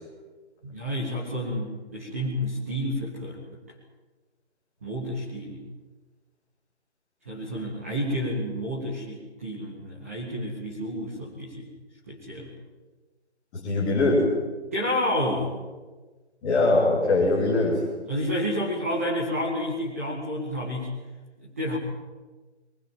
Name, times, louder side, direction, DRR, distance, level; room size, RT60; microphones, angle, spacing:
voice 1, 0.6-3.6 4.8-5.6 7.3-11.7 12.1-12.5 14.7-15.5 18.0-21.0 21.4-21.8, equal, 15° right, -6 dB, 2.1 m, -30 dB
voice 2, 13.5-14.3 16.4-17.8, left 2 dB, 5° left, -7 dB, 3.0 m, -22 dB
22.5 x 19.5 x 9.2 m, 1.3 s
figure-of-eight pair, 180°, 34 cm